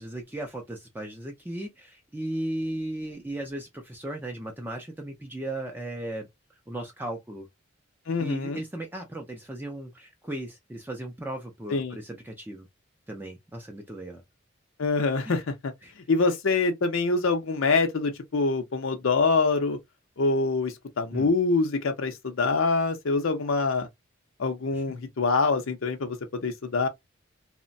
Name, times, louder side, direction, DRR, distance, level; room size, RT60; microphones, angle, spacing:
voice 1, 0.0-6.3 6.7-7.5 8.2-12.7 13.1-14.2 15.2-15.4 15.8-15.9 16.2-16.3 21.1-21.3 24.7-24.8, right 1 dB, 10° right, 0.4 m, -36 dB
voice 2, 8.1-8.6 11.7-12.0 14.8-15.7 16.1-19.8 20.2-23.9 24.4-26.9, left 3 dB, 80° left, 0.6 m, -25 dB
2.9 x 2.1 x 2.6 m
head